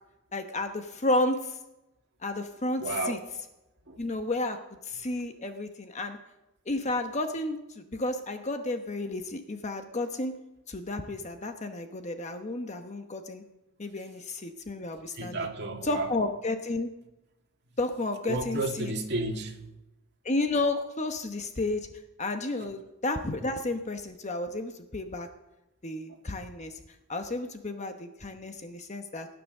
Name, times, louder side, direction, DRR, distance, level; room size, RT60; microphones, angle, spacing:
voice 1, 0.3-1.6 2.2-3.2 4.0-4.6 4.8-6.2 6.7-10.3 10.7-13.4 13.8-15.4 15.8-16.9 17.8-18.9 20.2-21.9 22.2-25.3 25.8-26.7 27.1-29.3, left 2 dB, 35° left, 6 dB, 1.0 m, -32 dB
voice 2, 2.8-3.2 3.9-4.0 15.1-16.1 18.3-19.6 22.6-22.7 26.1-26.2, right 2 dB, 55° right, 1 dB, 2.2 m, -32 dB
18.0 x 9.9 x 6.6 m, 0.98 s
head